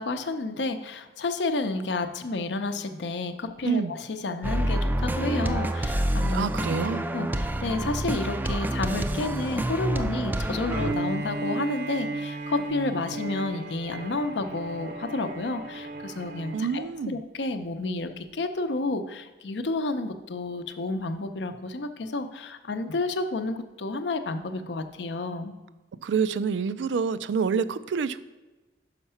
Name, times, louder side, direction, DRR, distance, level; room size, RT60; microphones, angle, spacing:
voice 1, 0.0-6.8 7.1-25.5, left 2 dB, 75° left, 8 dB, 0.6 m, -31 dB
sound 1, 4.4-10.9, right 1 dB, 10° right, 0.3 m, -27 dB
voice 2, 6.3-7.0 16.5-17.2 26.0-28.2, right 6 dB, 90° right, 15 dB, 0.3 m, -27 dB
Bowed string instrument, 10.7-16.7, right 2 dB, 65° right, 0.7 m, -35 dB
5.8 x 5.5 x 5.6 m, 1.1 s
head